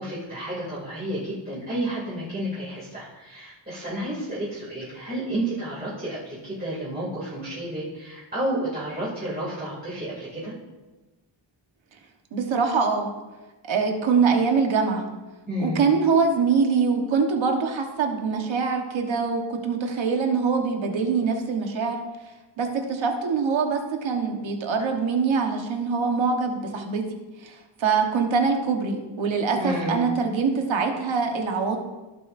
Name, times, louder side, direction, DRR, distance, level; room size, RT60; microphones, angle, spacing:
voice 1, 0.0-10.5 15.5-15.8 29.5-30.1, right 1 dB, 20° right, -9 dB, 2.7 m, -31 dB
voice 2, 12.3-13.1 13.7-15.1 15.6-22.0 22.6-27.0 27.4-31.8, right 5 dB, 80° right, 3 dB, 1.4 m, -24 dB
16.0 x 7.9 x 2.6 m, 1.2 s
wide cardioid pair, 155°, 45 cm